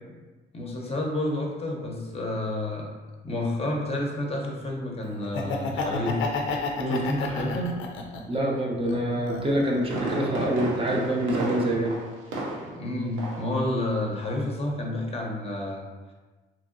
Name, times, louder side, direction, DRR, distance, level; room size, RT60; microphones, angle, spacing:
voice 1, 0.5-2.9 3.2-6.2 6.9-7.8 12.6-15.9, left 1 dB, 30° left, -1 dB, 0.6 m, -30 dB
Laughter, 5.2-8.4 8.8-9.9, left 4 dB, 75° left, 0.4 m, -31 dB
voice 2, 8.3-12.0, right 1 dB, 30° right, -2 dB, 0.5 m, -26 dB
Fireworks, 9.6-12.9 13.2-13.5 13.9-14.0, right 2 dB, 90° right, 0.6 m, -32 dB
2.8 x 2.7 x 2.5 m, 1.2 s
cardioid pair, 90°, 20 cm